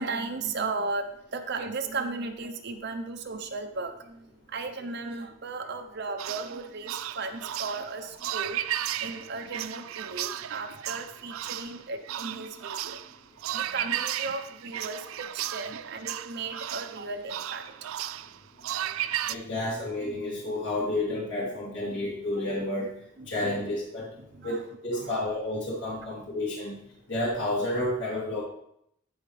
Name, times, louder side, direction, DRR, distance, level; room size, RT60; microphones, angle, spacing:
voice 1, 0.0-13.2 13.5-18.2 18.7-19.3 23.2-23.3 24.1-24.6 24.9-25.4, right 3 dB, 55° right, 5 dB, 0.7 m, -36 dB
sound 1, 6.2-19.4, right 12 dB, 85° right, 0.4 m, -34 dB
voice 2, 19.3-22.9 23.3-24.1 24.4-26.8 27.1-28.4, left 1 dB, 60° left, -6 dB, 3.1 m, -30 dB
14.5 x 4.8 x 3.3 m, 0.72 s
head